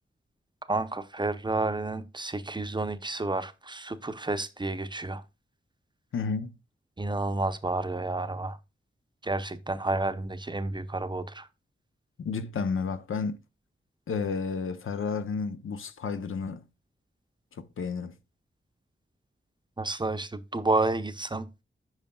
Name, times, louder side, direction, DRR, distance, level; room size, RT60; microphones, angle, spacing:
voice 1, 0.7-5.2 7.0-8.6 9.2-11.5 19.8-21.5, right 2 dB, 20° right, 0.6 m, -30 dB
voice 2, 6.1-6.5 12.2-13.4 14.1-16.6 17.6-18.1, left 5 dB, 80° left, 0.7 m, -31 dB
8.9 x 5.7 x 2.3 m
wide cardioid pair, 115°, 21 cm